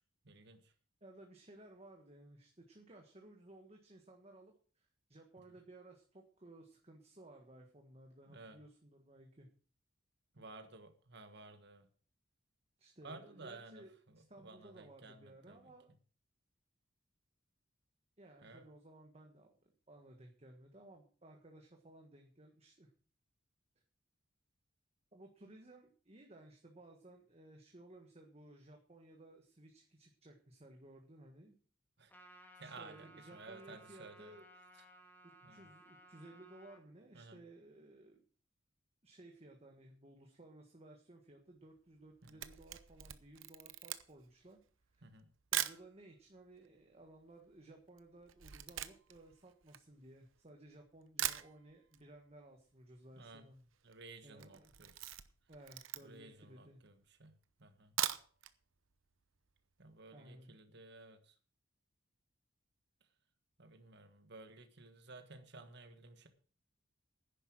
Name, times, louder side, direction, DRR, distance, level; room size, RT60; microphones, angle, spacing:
voice 1, 0.2-0.7 8.3-8.6 10.3-11.9 13.0-15.7 18.4-18.7 32.0-32.1 32.6-34.4 35.4-35.7 37.1-37.4 45.0-45.3 53.2-53.5 53.8-55.1 56.0-57.3 57.6-57.9 59.8-61.3 63.6-66.3, right 3 dB, 60° right, 8 dB, 1.5 m, -55 dB
voice 2, 1.0-9.5 12.8-15.9 18.2-19.5 19.9-22.9 25.1-31.5 32.6-34.4 35.2-38.2 39.0-44.6 44.9-45.1 45.5-53.6 54.2-54.7 55.5-56.8 60.1-60.5, right 1 dB, 30° right, 3 dB, 1.5 m, -58 dB
Trumpet, 32.1-36.8, right 1 dB, 10° left, 2.3 m, -60 dB
Camera, 42.0-45.9 46.5-46.6 46.8-50.5 50.9-51.0 51.2-52.0 52.3-52.4 52.7-52.8 53.0-53.4 53.7-54.0 54.3-56.3 56.9-57.0 57.8-58.5 58.9-59.0 59.4-59.5, right 12 dB, 85° right, 0.9 m, -41 dB
11.0 x 10.0 x 6.2 m, 0.41 s
head